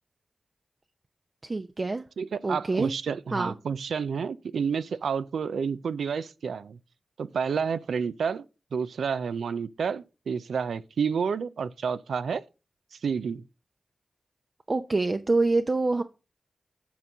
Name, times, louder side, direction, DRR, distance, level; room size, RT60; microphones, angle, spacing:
voice 1, 1.4-2.0 2.4-2.9 3.3-3.5 14.7-16.0, right 3 dB, 45° right, 0.6 m, -26 dB
voice 2, 2.2-6.8 7.2-8.5 8.7-12.4 12.9-13.4, right 6 dB, 90° right, 0.4 m, -30 dB
8.4 x 3.8 x 5.4 m
cardioid pair, 40°, 0 cm